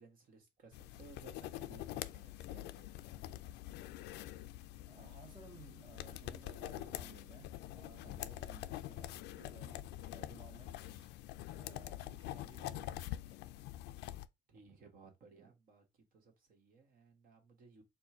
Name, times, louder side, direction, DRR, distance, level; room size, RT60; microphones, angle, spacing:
voice 1, 0.0-2.9 14.5-17.8, right 4 dB, 55° right, 1.5 m, -60 dB
sound 1, 0.7-14.3, left 14 dB, 85° left, 0.4 m, -45 dB
voice 2, 4.8-11.1 11.5-13.4 15.4-15.5, right 5 dB, 30° right, 0.9 m, -59 dB
4.3 x 2.3 x 4.3 m
cardioid pair, 110°, 17 cm